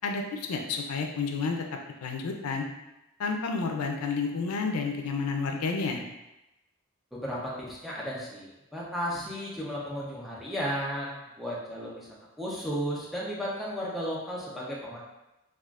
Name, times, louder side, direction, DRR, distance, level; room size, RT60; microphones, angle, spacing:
voice 1, 0.0-1.7 2.0-2.7 3.2-6.0, left 4 dB, 85° left, 3 dB, 0.4 m, -30 dB
voice 2, 7.1-12.1 12.4-15.0, equal, ahead, -6 dB, 0.4 m, -34 dB
3.6 x 2.3 x 2.3 m, 0.95 s
head